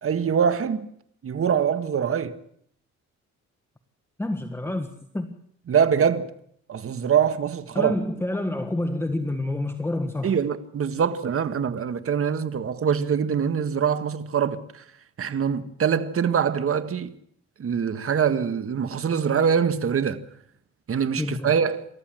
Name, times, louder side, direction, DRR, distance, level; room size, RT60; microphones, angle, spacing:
voice 1, 0.0-0.9 1.2-2.4 5.7-6.3 6.7-8.0 10.2-14.8 15.2-17.1 17.6-20.2 20.9-21.9, right 7 dB, 45° right, 1.7 m, -24 dB
voice 2, 4.2-5.4 7.7-10.4 21.2-21.5, left 1 dB, 10° left, 1.5 m, -28 dB
28.0 x 14.0 x 7.8 m
cardioid pair, 90°, 30 cm